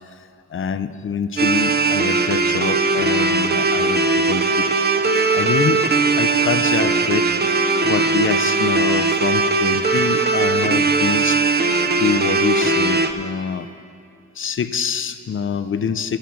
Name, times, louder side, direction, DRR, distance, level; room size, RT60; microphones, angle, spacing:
voice 1, 0.2-4.7 5.3-5.8 6.2-11.6 12.0-13.7 14.4-16.2, left 6 dB, 40° left, 11 dB, 0.4 m, -25 dB
sound 1, 1.4-13.1, right 3 dB, 30° right, 0.4 m, -19 dB
13.0 x 7.1 x 6.1 m, 2.4 s
wide cardioid pair, 170°, 33 cm